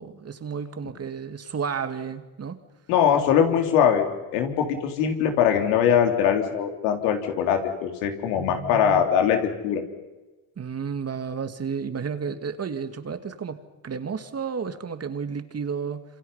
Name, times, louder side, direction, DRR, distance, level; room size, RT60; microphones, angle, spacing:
voice 1, 0.0-2.6 8.4-9.1 10.6-16.0, right 6 dB, 30° right, 9 dB, 2.3 m, -32 dB
voice 2, 2.9-4.0 4.3-9.8, left 8 dB, 90° left, 4 dB, 3.7 m, -22 dB
27.0 x 26.5 x 5.7 m, 1.1 s
supercardioid pair, 95°, 46 cm